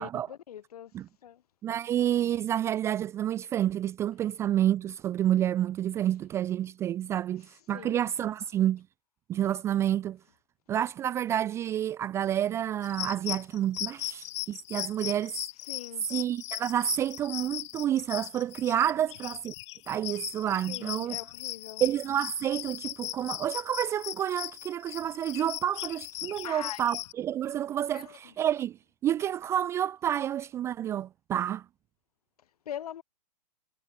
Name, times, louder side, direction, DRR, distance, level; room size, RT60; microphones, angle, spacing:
voice 1, 0.0-0.9 1.2-1.4 7.7-8.0 15.7-16.1 20.7-21.9 26.4-26.8 27.9-28.2 32.6-33.0, left 10 dB, 65° left, 2.7 m, -42 dB
voice 2, 1.6-8.9 9.3-10.2 10.7-15.4 16.1-19.5 19.9-21.2 21.8-31.7, right 11 dB, 15° right, 0.4 m, -29 dB
sound 1, 12.8-27.1, left 18 dB, 45° left, 1.5 m, -38 dB
hypercardioid pair, 140°, 21 cm